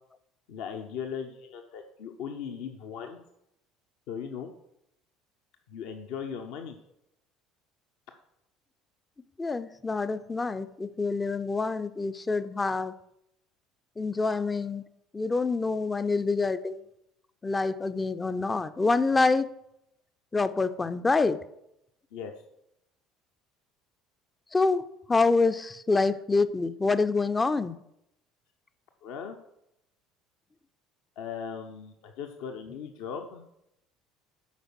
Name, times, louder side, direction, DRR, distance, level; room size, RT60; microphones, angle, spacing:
voice 1, 0.5-3.2 4.1-4.5 5.7-6.8 22.1-22.3 29.0-29.4 31.2-33.4, left 7 dB, 60° left, 0.7 m, -38 dB
voice 2, 9.4-12.9 14.0-14.8 15.1-16.8 17.4-19.5 20.3-21.4 24.5-27.8, left 3 dB, 20° left, 0.5 m, -26 dB
8.2 x 5.1 x 6.2 m
figure-of-eight pair, 60°, 0 cm